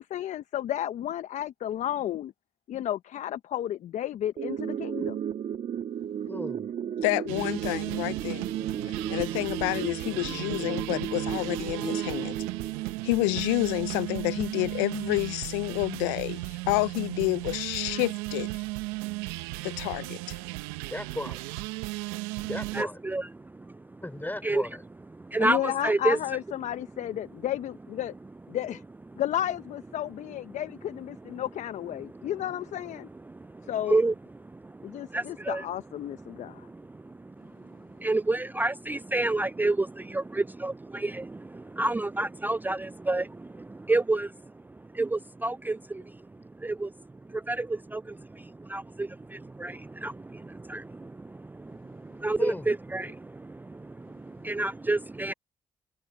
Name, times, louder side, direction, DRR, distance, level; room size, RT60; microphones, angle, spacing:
voice 1, 0.0-2.3 2.7-5.2 25.4-28.1 28.5-28.8 29.2-33.1 33.7-34.0 34.8-36.7, left 11 dB, 70° left, 1.0 m, -32 dB
sound 1, 4.4-13.4, right 9 dB, 65° right, 1.8 m, -34 dB
voice 2, 6.3-6.6 20.9-21.4 22.5-23.0 24.0-24.8 52.4-52.7, left 1 dB, 15° left, 3.7 m, -35 dB
voice 3, 7.0-8.5 8.9-12.4 13.0-18.6 19.6-20.4, left 28 dB, 90° left, 0.4 m, -29 dB
sound 2, 7.3-22.8, right 22 dB, 90° right, 0.8 m, -35 dB
voice 4, 22.7-23.8 24.4-24.7 25.2-26.2 33.3-34.1 34.4-35.6 36.3-44.3 44.7-46.2 46.6-46.9 47.3-55.3, right 2 dB, 15° right, 0.4 m, -30 dB
hypercardioid pair, 45°, 13 cm